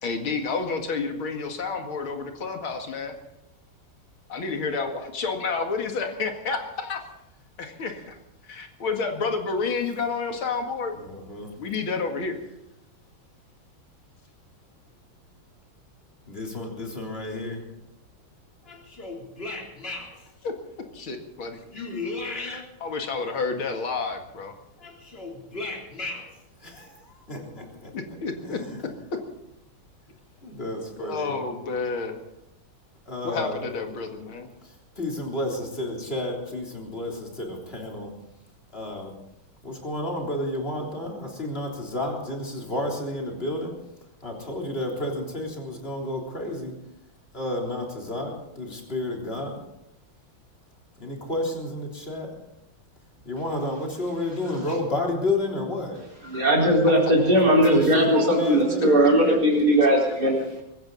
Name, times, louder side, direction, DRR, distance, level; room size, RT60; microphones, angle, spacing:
voice 1, 0.0-3.1 4.3-7.1 7.6-8.2 8.5-11.0 11.6-12.4 20.4-20.5 20.9-21.6 22.4-24.5 27.9-28.9 31.0-32.2 33.2-34.5 56.9-57.0 59.3-59.4, left 4 dB, 80° left, 4 dB, 2.9 m, -30 dB
voice 2, 11.0-11.5 16.3-17.7 18.6-20.3 21.7-22.6 24.8-26.3 26.6-27.9 28.4-28.8 30.4-31.3 33.1-33.7 34.6-38.1 38.7-39.1 39.6-43.7 44.2-46.7 47.3-49.6 51.0-52.4 53.3-56.1 57.4-59.0, left 1 dB, 25° left, -1 dB, 3.7 m, -31 dB
voice 3, 56.2-60.6, right 1 dB, 50° right, -3 dB, 5.3 m, -19 dB
23.5 x 15.0 x 4.1 m, 0.87 s
omnidirectional pair, 2.3 m